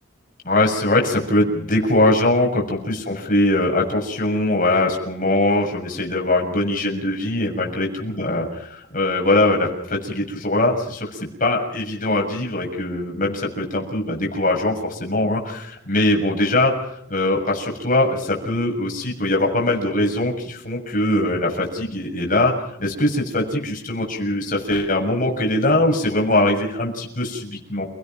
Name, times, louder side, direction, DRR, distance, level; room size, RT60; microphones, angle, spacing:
voice 1, 0.4-22.5 22.8-27.9, left 1 dB, 40° left, 0 dB, 6.7 m, -21 dB
29.5 x 18.0 x 5.9 m, 0.74 s
head